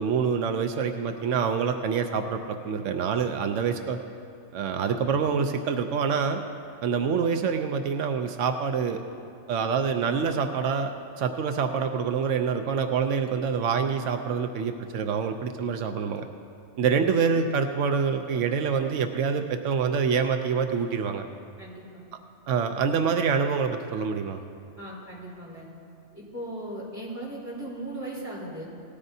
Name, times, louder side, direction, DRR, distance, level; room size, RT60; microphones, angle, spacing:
voice 1, 0.0-4.0 4.5-6.4 6.8-9.0 9.5-10.9 11.2-16.3 16.8-21.2 22.5-24.4, right 6 dB, 85° right, 6 dB, 1.0 m, -26 dB
voice 2, 21.6-22.0 24.8-25.7 26.1-28.6, right 1 dB, 15° right, -8 dB, 3.5 m, -37 dB
18.5 x 13.5 x 2.7 m, 2.5 s
omnidirectional pair, 1.2 m